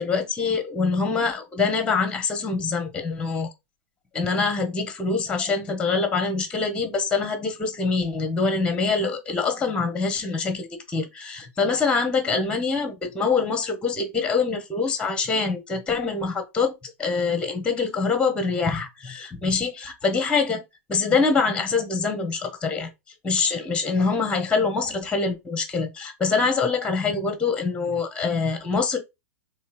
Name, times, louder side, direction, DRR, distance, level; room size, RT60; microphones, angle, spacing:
voice 1, 0.0-3.5 4.1-16.7 17.0-20.6 20.9-22.9 23.2-29.0, left 4 dB, 10° left, 0.9 m, -24 dB
4.3 x 3.2 x 2.5 m
figure-of-eight pair, 100°, 8 cm